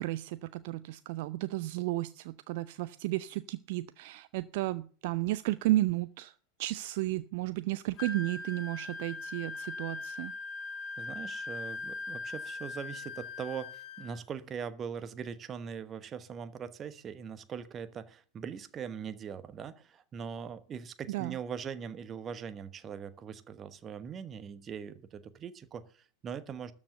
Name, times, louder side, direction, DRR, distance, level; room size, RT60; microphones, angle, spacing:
voice 1, 0.0-6.3 6.6-10.3 21.1-21.4, right 17 dB, 50° right, 16 dB, 0.5 m, -33 dB
Wind instrument woodwind instrument, 8.0-14.2, left 3 dB, 30° left, 2.0 m, -40 dB
voice 2, 11.0-26.7, right 7 dB, 25° right, 13 dB, 1.1 m, -41 dB
13.0 x 7.3 x 6.7 m, 0.42 s
figure-of-eight pair, 90°, 0 cm